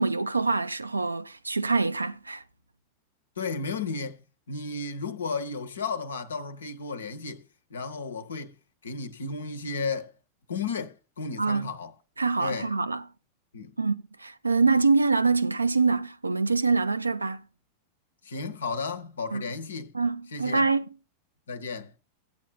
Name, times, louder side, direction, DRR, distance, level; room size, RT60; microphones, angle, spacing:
voice 1, 0.0-2.4 11.4-11.7 12.2-13.0 13.8-17.4 19.3-19.4 19.9-20.9, right 4 dB, 80° right, 0.5 m, -25 dB
voice 2, 3.4-4.2 4.5-8.5 8.8-10.1 10.5-11.9 12.4-12.7 13.5-13.8 18.2-19.9 20.3-20.6 21.5-21.9, left 4 dB, 70° left, 0.9 m, -33 dB
16.0 x 9.0 x 2.2 m
figure-of-eight pair, 90°, 0 cm